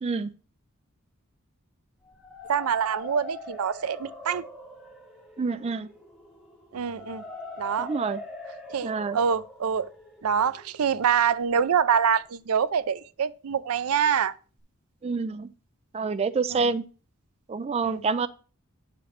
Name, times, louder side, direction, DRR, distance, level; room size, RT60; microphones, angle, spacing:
sound 1, 2.0-11.9, left 2 dB, ahead, 1.6 m, -43 dB
voice 1, 2.5-4.4 6.7-7.2 7.6-7.9 8.7-9.9 10.2-14.3 16.5-16.7 17.8-18.0, right 7 dB, 90° right, 0.5 m, -25 dB
voice 2, 5.4-5.9 7.8-8.2 8.8-9.2 15.0-15.5 15.9-16.8 17.5-18.3, right 4 dB, 30° right, 0.3 m, -27 dB
9.2 x 3.2 x 6.5 m
head